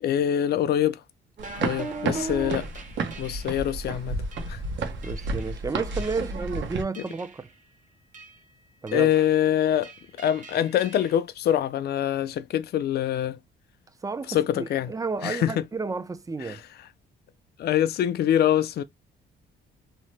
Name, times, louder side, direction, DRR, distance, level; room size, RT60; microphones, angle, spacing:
voice 1, 0.0-1.0 1.6-2.7 3.2-4.2 4.5-4.6 8.9-9.9 10.2-13.4 14.3-14.9 15.2-15.6 16.4-16.6 17.6-18.8, left 11 dB, 55° left, 0.4 m, -24 dB
sound 1, 1.4-3.7 4.3-4.5 5.0-5.5 6.0-6.5 6.9-7.5 8.1-8.4 8.9-9.4 9.8-11.1, right 3 dB, 40° right, 0.9 m, -40 dB
sound 2, 1.4-6.8, right 3 dB, 70° right, 0.8 m, -32 dB
voice 2, 5.0-7.5 8.8-9.1 14.0-16.6, right 4 dB, 15° right, 0.4 m, -32 dB
2.8 x 2.0 x 3.2 m
cardioid pair, 90°, 20 cm